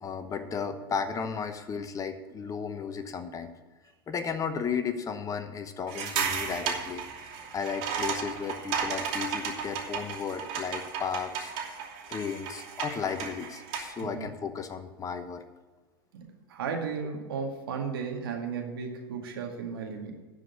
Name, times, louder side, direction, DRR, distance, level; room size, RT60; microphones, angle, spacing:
voice 1, 0.0-3.5 4.1-11.5 12.1-15.4, left 6 dB, 25° left, 9 dB, 1.0 m, -34 dB
sound 1, 5.9-14.0, right 6 dB, 50° right, 2.8 m, -34 dB
voice 2, 16.1-20.1, right 5 dB, 75° right, 2 dB, 2.1 m, -35 dB
11.0 x 5.1 x 7.9 m, 1.3 s
hypercardioid pair, 90°, 12 cm